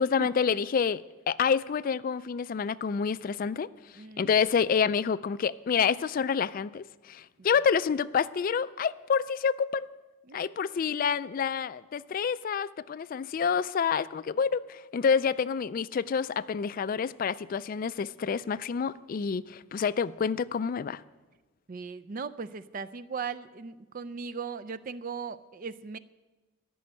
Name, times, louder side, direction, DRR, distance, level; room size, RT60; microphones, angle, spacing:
voice 1, 0.0-3.7 4.2-9.9 10.3-21.0, left 6 dB, 45° left, 0.3 m, -28 dB
voice 2, 4.0-4.3 10.3-10.6 21.7-26.0, right 5 dB, 45° right, 0.4 m, -38 dB
14.0 x 6.3 x 9.9 m
head